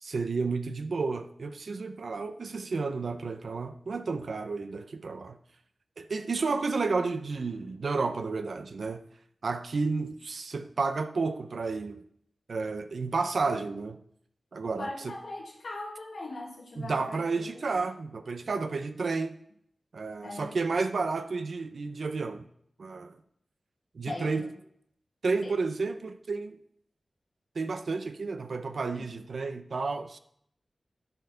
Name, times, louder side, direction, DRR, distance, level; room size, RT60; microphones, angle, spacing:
voice 1, 0.0-5.4 6.0-9.0 9.4-12.0 12.5-14.0 14.5-15.2 16.8-19.4 19.9-22.5 22.8-23.2 23.9-24.5 25.2-26.6 27.5-30.2, right 4 dB, 75° right, 0.7 m, -31 dB
voice 2, 14.8-17.7 20.2-20.6 20.9-21.0 24.1-24.5 25.4-25.5 29.0-29.1, left 2 dB, 75° left, 1.8 m, -40 dB
10.5 x 5.7 x 5.7 m
wide cardioid pair, 95°, 0 cm